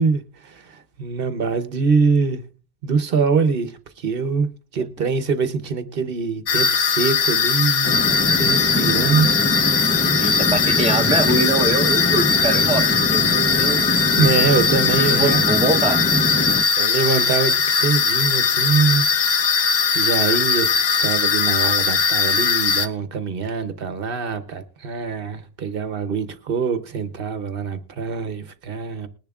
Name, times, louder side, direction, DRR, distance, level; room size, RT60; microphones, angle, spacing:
voice 1, 0.0-2.4 2.8-9.3 14.2-15.4 16.8-19.1 19.9-29.1, right 5 dB, 65° right, 1.0 m, -23 dB
sound 1, 6.5-22.9, left 6 dB, 75° left, 1.1 m, -19 dB
sound 2, 7.8-16.6, left 1 dB, 15° left, 0.4 m, -24 dB
voice 2, 10.2-13.8 15.1-16.0, right 2 dB, 5° right, 0.9 m, -23 dB
20.5 x 10.5 x 2.3 m
omnidirectional pair, 1.0 m